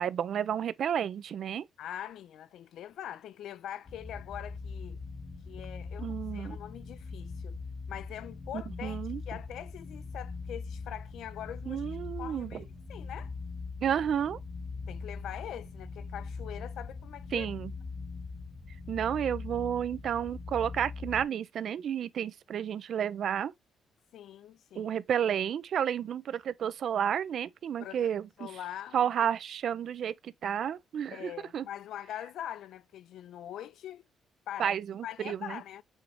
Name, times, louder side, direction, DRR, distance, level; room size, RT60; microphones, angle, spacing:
voice 1, 0.0-1.6 6.0-6.6 8.8-9.2 11.7-12.6 13.8-14.4 17.3-17.7 18.9-23.5 24.8-28.5 28.9-31.7 34.6-35.6, right 9 dB, 65° right, 0.3 m, -31 dB
voice 2, 1.8-5.0 5.5-7.6 7.9-11.8 12.2-13.3 14.9-17.5 24.1-24.9 27.8-28.1 28.4-29.3 31.1-34.0 34.5-34.8 35.0-35.8, left 11 dB, 75° left, 0.4 m, -43 dB
sound 1, 3.9-21.3, left 4 dB, 45° left, 1.1 m, -41 dB
7.0 x 2.4 x 3.1 m
cardioid pair, 90°, 0 cm